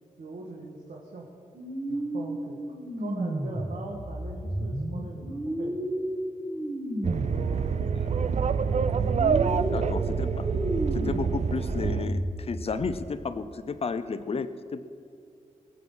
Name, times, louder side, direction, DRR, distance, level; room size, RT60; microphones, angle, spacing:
voice 1, 0.2-1.3 1.9-2.6 3.0-5.8 7.2-7.9 8.6-8.9 9.5-10.1, right 3 dB, 70° right, -2 dB, 1.7 m, -41 dB
sound 1, 1.5-7.6 8.0-12.9, right 1 dB, 20° right, 1.5 m, -33 dB
sound 2, 7.0-12.0, right 6 dB, 50° right, 0.5 m, -26 dB
voice 2, 9.7-10.5 10.9-14.8, left 4 dB, 40° left, 11 dB, 0.6 m, -32 dB
20.5 x 7.9 x 5.6 m, 2.4 s
wide cardioid pair, 155°, 15 cm